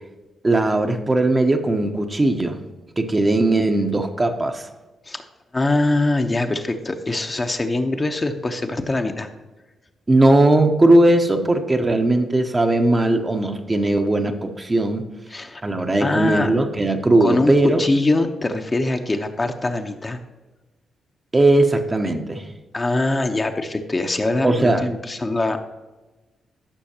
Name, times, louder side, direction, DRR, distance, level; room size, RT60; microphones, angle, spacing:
voice 1, 0.4-2.6 3.0-4.7 10.1-15.0 15.6-17.8 21.3-22.5 24.4-24.9, right 2 dB, 30° right, 5 dB, 1.0 m, -18 dB
voice 2, 5.5-9.3 15.3-15.6 16.0-16.5 17.2-17.5 17.8-20.2 22.7-25.6, left 2 dB, 30° left, 5 dB, 0.9 m, -23 dB
14.5 x 6.3 x 2.9 m, 1.2 s
hypercardioid pair, 40°, 0 cm